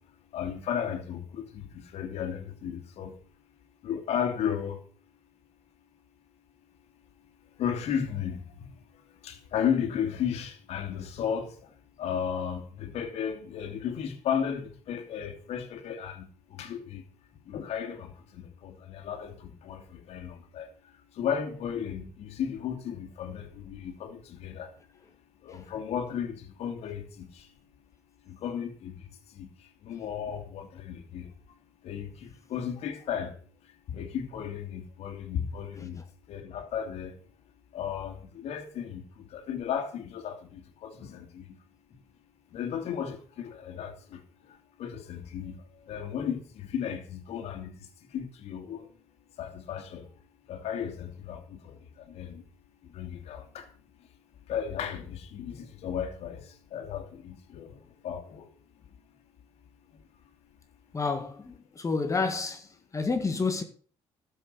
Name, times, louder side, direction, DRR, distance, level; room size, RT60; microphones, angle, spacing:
voice 1, 0.3-3.1 3.8-4.8 7.6-8.7 9.2-11.7 12.0-17.0 17.5-20.7 21.2-24.7 25.4-27.5 28.3-29.1 29.3-29.5 29.8-31.3 31.8-33.4 33.9-36.0 36.3-37.1 37.7-41.5 42.5-44.2 44.8-45.6 45.9-47.7 48.1-48.9 49.4-50.0 50.5-52.4 52.8-53.7 54.5-57.7 58.0-58.5, left 8 dB, 70° left, 2.5 m, -34 dB
voice 2, 60.9-63.6, left 4 dB, 30° left, 1.9 m, -30 dB
13.0 x 7.4 x 6.7 m
cardioid pair, 95°, 11 cm